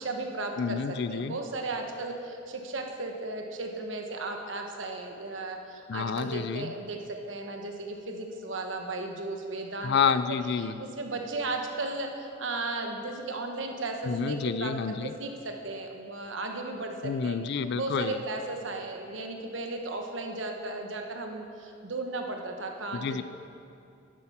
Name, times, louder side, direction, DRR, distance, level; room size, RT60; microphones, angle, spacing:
voice 1, 0.0-9.9 10.3-10.4 10.8-14.7 15.0-17.4 17.7-23.2, right 2 dB, 70° right, 3 dB, 1.2 m, -35 dB
voice 2, 0.6-1.4 5.9-6.7 9.8-10.8 14.1-15.1 17.0-18.2 22.9-23.2, left 6 dB, 60° left, 13 dB, 0.4 m, -29 dB
10.5 x 8.7 x 5.7 m, 2.5 s
head